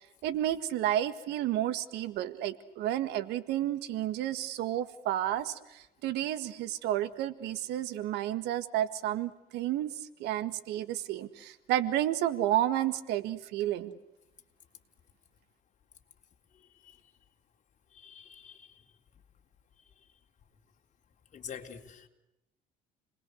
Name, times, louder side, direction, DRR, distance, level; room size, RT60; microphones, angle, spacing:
voice 1, 0.2-9.9 10.2-13.9, right 12 dB, 90° right, 13 dB, 1.8 m, -31 dB
voice 2, 16.5-17.0 17.9-18.8 21.3-22.1, left 7 dB, 45° left, 3 dB, 3.8 m, -47 dB
30.0 x 21.0 x 8.0 m, 0.93 s
cardioid pair, 110°, 17 cm